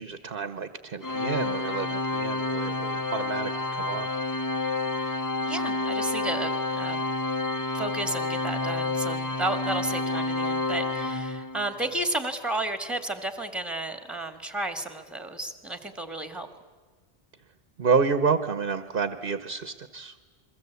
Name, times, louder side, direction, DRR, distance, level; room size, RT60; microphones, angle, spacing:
voice 1, 0.0-4.1 17.8-20.1, right 5 dB, 55° right, 11 dB, 1.2 m, -29 dB
Organ, 1.0-11.8, left 2 dB, 20° left, 0.8 m, -29 dB
voice 2, 5.5-7.1 7.7-16.5, right 2 dB, ahead, 8 dB, 1.8 m, -32 dB
29.0 x 22.5 x 8.3 m, 1.4 s
omnidirectional pair, 1.1 m